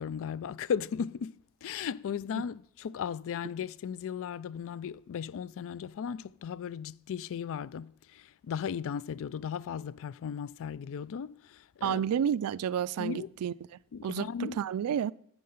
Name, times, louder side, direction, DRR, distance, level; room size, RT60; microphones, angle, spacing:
voice 1, 0.0-1.3 1.6-12.1 13.0-13.3 13.9-14.6, left 7 dB, 65° left, 0.3 m, -36 dB
voice 2, 11.8-13.5 14.0-15.1, right 9 dB, 80° right, 0.3 m, -30 dB
10.5 x 7.5 x 5.7 m
head